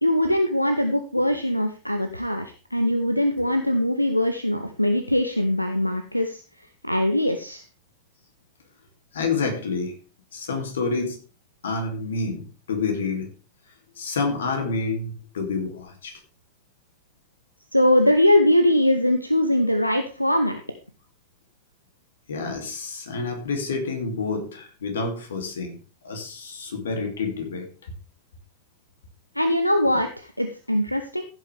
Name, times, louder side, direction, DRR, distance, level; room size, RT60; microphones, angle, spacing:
voice 1, 0.0-6.4 6.8-7.6 17.7-20.6 29.3-31.2, left 1 dB, 90° left, 8 dB, 0.9 m, -22 dB
voice 2, 9.1-9.9 10.3-11.2 11.6-13.3 14.0-16.1 22.3-25.8 26.0-27.9, left 4 dB, 65° left, 4 dB, 2.8 m, -28 dB
15.0 x 8.3 x 3.5 m, 0.34 s
figure-of-eight pair, 90°, 0 cm